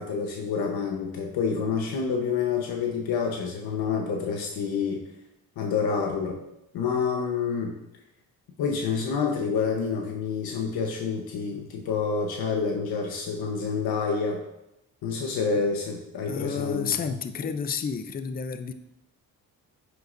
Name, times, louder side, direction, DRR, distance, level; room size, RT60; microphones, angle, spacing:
voice 1, 0.0-5.0 5.6-6.4 6.7-7.7 8.6-14.4 15.0-16.9, left 5 dB, 85° left, 1 dB, 1.1 m, -28 dB
voice 2, 16.3-18.7, left 6 dB, 25° left, 9 dB, 0.5 m, -30 dB
9.3 x 6.6 x 2.6 m, 0.86 s
cardioid pair, 100°, 36 cm